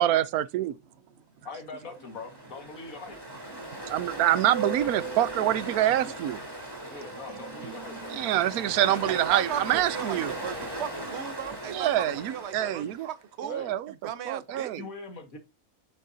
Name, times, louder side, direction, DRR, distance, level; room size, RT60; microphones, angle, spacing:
voice 1, 0.0-0.8 3.9-6.4 8.1-10.3 11.7-13.1 13.5-13.8 14.3-14.8, right 12 dB, 90° right, 1.1 m, -26 dB
voice 2, 0.7-1.3 3.3-4.3 5.8-6.1 6.6-7.0 9.1-12.9 13.4-14.7, right 9 dB, 55° right, 1.0 m, -38 dB
voice 3, 1.4-3.2 6.9-8.2 8.9-9.2 12.6-12.9 13.5-13.7 14.8-15.4, left 3 dB, 70° left, 2.1 m, -42 dB
Ocean, 2.0-13.0, right 2 dB, 15° right, 2.5 m, -38 dB
8.5 x 6.5 x 2.7 m
omnidirectional pair, 1.5 m